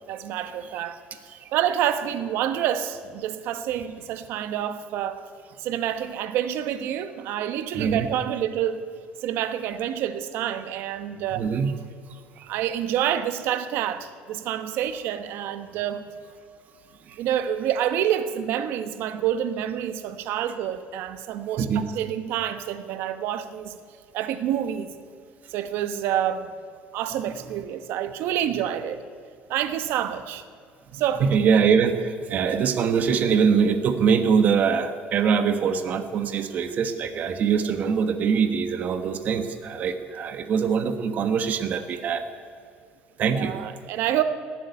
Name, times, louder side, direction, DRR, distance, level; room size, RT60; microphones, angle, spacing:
voice 1, 0.1-1.0 1.5-5.2 5.6-8.8 9.2-11.4 12.5-16.1 17.2-23.8 24.1-24.9 25.5-26.5 26.9-29.0 29.5-30.4 30.9-31.3 43.3-44.2, right 10 dB, 65° right, 11 dB, 1.1 m, -27 dB
voice 2, 7.7-8.1 11.3-11.7 12.1-12.5 17.1-17.2 21.6-21.8 30.9-42.2 43.2-43.6, right 6 dB, 40° right, 9 dB, 1.3 m, -23 dB
18.5 x 7.6 x 9.5 m, 2.2 s
cardioid pair, 145°, 4 cm